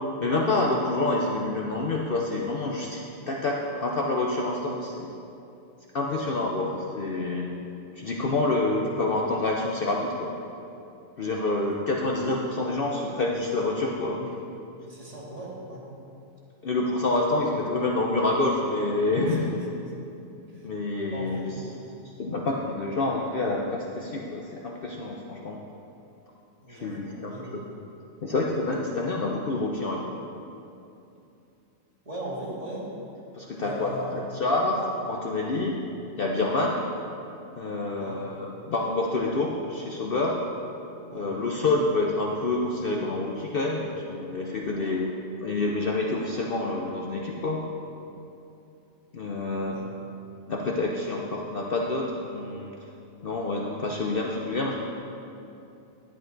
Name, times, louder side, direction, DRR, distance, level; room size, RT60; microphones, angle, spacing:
voice 1, 0.2-5.1 5.9-7.5 8.0-10.3 11.2-14.3 16.6-19.4 20.6-21.4 22.2-25.6 26.7-27.3 28.2-30.2 33.3-35.8 36.1-36.9 37.6-40.4 41.1-45.1 45.4-47.6 49.1-49.8 50.5-52.7 53.2-54.8, left 2 dB, 50° left, -1 dB, 0.8 m, -27 dB
voice 2, 14.9-15.8 19.3-19.4 20.5-20.7 21.1-21.9 26.6-27.7 32.0-32.8 33.6-34.4 38.0-38.2 41.1-41.3 49.7-49.9, right 1 dB, 30° right, -6 dB, 1.9 m, -39 dB
11.0 x 8.7 x 3.9 m, 2.7 s
omnidirectional pair, 1.4 m